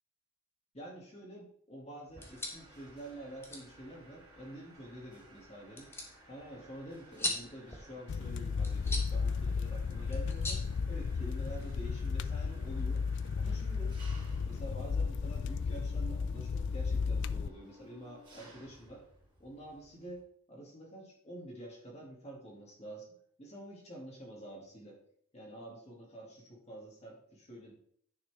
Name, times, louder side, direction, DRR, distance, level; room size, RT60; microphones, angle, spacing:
voice 1, 0.7-5.9 6.3-10.6 10.9-13.0 13.4-14.0 14.4-19.0 19.4-20.2 20.5-23.1 23.4-25.0 25.3-27.7, right 1 dB, 30° left, -2 dB, 2.1 m, -48 dB
sound 1, 2.1-11.5, left 2 dB, 10° left, 1.1 m, -44 dB
Mechanisms, 2.2-20.2, right 1 dB, 20° right, 3.0 m, -58 dB
sound 2, 8.1-17.5, left 5 dB, 55° left, 0.3 m, -34 dB
10.0 x 5.9 x 3.4 m, 0.62 s
head